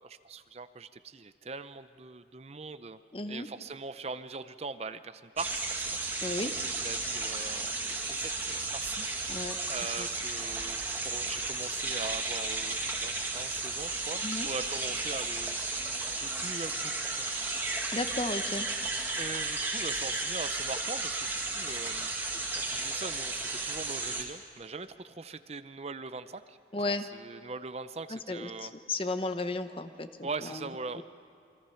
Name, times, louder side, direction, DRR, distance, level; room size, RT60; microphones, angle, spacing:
voice 1, 0.0-3.0 3.3-9.1 9.7-15.6 16.2-17.3 19.2-22.1 22.5-26.6 26.9-28.7 30.2-31.0, right 3 dB, 35° right, 12 dB, 0.6 m, -41 dB
voice 2, 3.1-3.5 6.2-6.5 9.3-9.6 10.0-10.1 14.2-14.5 17.9-18.7 26.7-27.1 28.1-30.1 30.5-30.6 31.0-31.1, left 2 dB, 30° left, 9 dB, 0.9 m, -34 dB
sound 1, 5.4-24.2, right 3 dB, 10° right, 2.1 m, -34 dB
28.0 x 24.0 x 5.7 m, 2.5 s
head